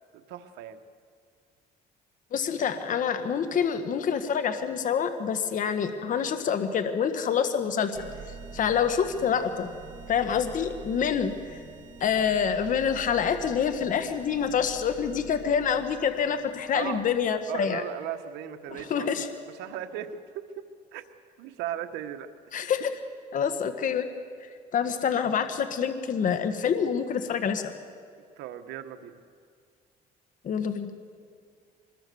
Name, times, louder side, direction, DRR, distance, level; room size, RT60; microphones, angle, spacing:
voice 1, 0.3-0.8 16.7-17.0 17.5-20.6 20.9-21.0 21.4-22.3 28.4-29.2, right 11 dB, 90° right, 7 dB, 1.4 m, -37 dB
voice 2, 2.3-9.7 10.1-11.6 12.0-17.8 18.7-19.3 22.5-22.9 23.3-24.1 24.4-27.7 30.4-30.9, left 7 dB, 50° left, 8 dB, 1.6 m, -27 dB
sound 1, 7.9-17.4, right 6 dB, 45° right, 2.6 m, -46 dB
25.0 x 21.5 x 7.0 m, 2.3 s
cardioid pair, 110°, 17 cm